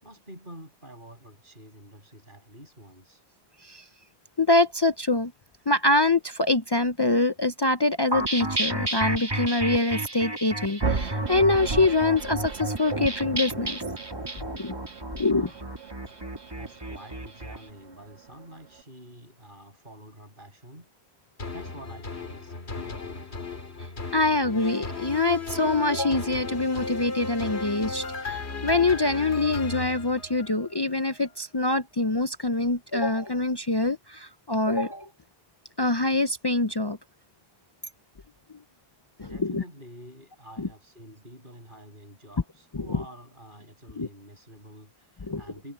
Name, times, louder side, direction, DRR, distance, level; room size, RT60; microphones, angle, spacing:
voice 1, 0.0-3.2 15.2-15.7 16.5-20.9 21.5-23.5 39.2-45.7, equal, 50° right, 7.9 m, -48 dB
voice 2, 4.4-5.3 5.7-13.8 14.5-14.8 15.2-15.5 24.1-35.1 35.8-37.0 39.2-39.6 40.6-40.7 42.7-43.0 44.0-44.1 45.3-45.4, left 2 dB, 30° left, 0.5 m, -25 dB
sound 1, 8.1-17.6, right 1 dB, 20° right, 2.0 m, -32 dB
sound 2, 10.8-18.8, right 4 dB, 75° right, 2.4 m, -36 dB
sound 3, 21.4-30.8 31.3-31.4, left 3 dB, 75° left, 2.7 m, -35 dB
omnidirectional pair, 1.1 m